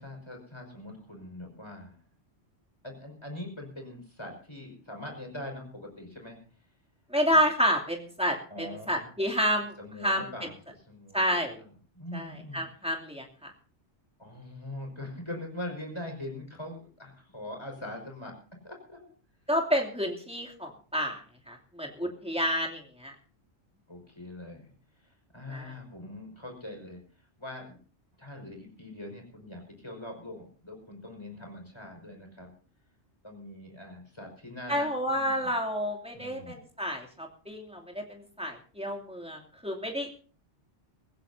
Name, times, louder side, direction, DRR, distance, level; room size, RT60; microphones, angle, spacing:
voice 1, 0.0-2.0 2.8-6.4 8.5-9.1 9.8-10.5 10.8-11.7 11.9-12.6 14.2-18.3 18.6-19.1 22.0-22.1 23.9-24.7 25.0-27.0 27.4-27.8 28.2-32.5 33.2-35.5 36.1-36.6, left 1 dB, 25° left, 2 dB, 5.6 m, -42 dB
voice 2, 7.1-9.7 10.0-10.3 11.1-11.6 12.1-13.5 19.5-23.1 25.5-25.7 34.7-40.1, equal, 5° right, 0 dB, 2.7 m, -30 dB
24.0 x 15.5 x 2.8 m, 0.40 s
omnidirectional pair, 1.2 m